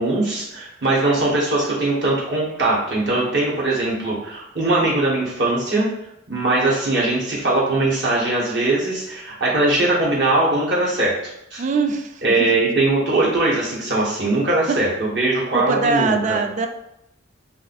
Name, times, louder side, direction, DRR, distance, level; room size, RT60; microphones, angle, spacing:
voice 1, 0.0-5.9 6.3-11.1 11.5-11.6 12.2-16.4, right 2 dB, 65° right, -6 dB, 1.3 m, -20 dB
voice 2, 11.6-12.5 14.7-14.9 15.5-16.7, right 4 dB, 40° right, 6 dB, 0.3 m, -22 dB
2.5 x 2.5 x 4.0 m, 0.81 s
head